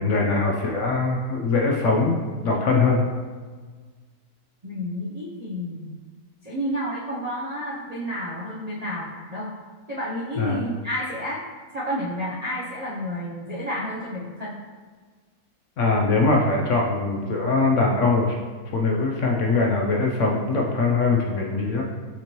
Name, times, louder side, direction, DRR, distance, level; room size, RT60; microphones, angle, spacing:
voice 1, 0.0-2.2 2.4-3.0 10.4-10.6 15.8-18.3 18.7-21.8, left 3 dB, 65° left, 0 dB, 0.8 m, -22 dB
voice 2, 4.6-5.9 6.4-9.5 9.9-11.4 11.7-14.6, equal, 50° right, -7 dB, 0.4 m, -30 dB
5.9 x 2.9 x 2.9 m, 1.5 s
omnidirectional pair, 1.6 m